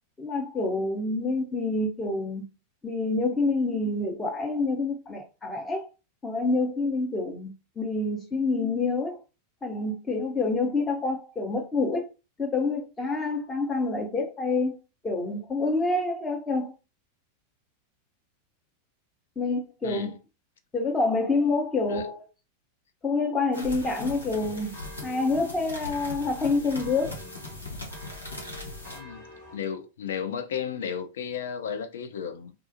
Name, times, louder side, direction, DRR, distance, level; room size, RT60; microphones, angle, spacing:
voice 1, 0.2-2.4 2.8-5.9 6.2-7.5 7.8-9.2 9.6-12.1 12.4-14.8 15.0-16.7 19.4-20.1 20.7-22.2 23.0-24.7 25.0-27.2, left 3 dB, 15° left, 0.8 m, -27 dB
sound 1, 23.5-29.0, left 2 dB, 80° left, 0.9 m, -39 dB
sound 2, 23.8-29.6, left 1 dB, 40° left, 1.2 m, -48 dB
voice 2, 28.9-29.3 29.5-32.5, left 7 dB, 60° left, 0.4 m, -33 dB
2.4 x 2.3 x 2.6 m
figure-of-eight pair, 90°, 0 cm